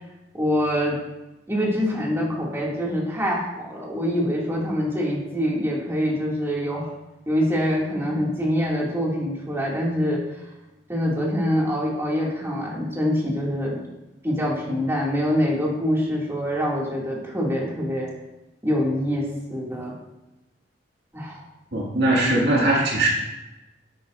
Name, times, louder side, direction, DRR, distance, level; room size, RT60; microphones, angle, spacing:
voice 1, 0.3-1.0 1.5-6.9 7.3-10.2 10.9-13.8 14.2-18.1 18.6-19.9 21.1-21.4, equal, 15° right, -5 dB, 2.3 m, -25 dB
voice 2, 21.7-23.1, right 2 dB, 65° right, -3 dB, 2.0 m, -20 dB
11.5 x 8.3 x 2.6 m, 1.0 s
head